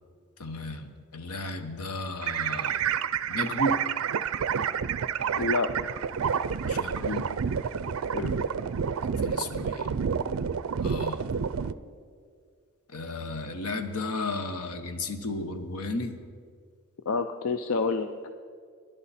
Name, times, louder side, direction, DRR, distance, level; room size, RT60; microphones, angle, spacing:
voice 1, 0.4-2.8 3.3-3.8 6.6-7.3 9.0-9.9 10.8-11.2 12.9-16.2, left 2 dB, 85° left, 8 dB, 1.1 m, -34 dB
sound 1, 2.2-11.7, right 7 dB, 65° right, 0.4 m, -29 dB
voice 2, 5.4-6.0 8.1-8.4 17.1-18.1, left 4 dB, 70° left, 8 dB, 0.5 m, -28 dB
20.5 x 10.5 x 4.2 m, 2.1 s
head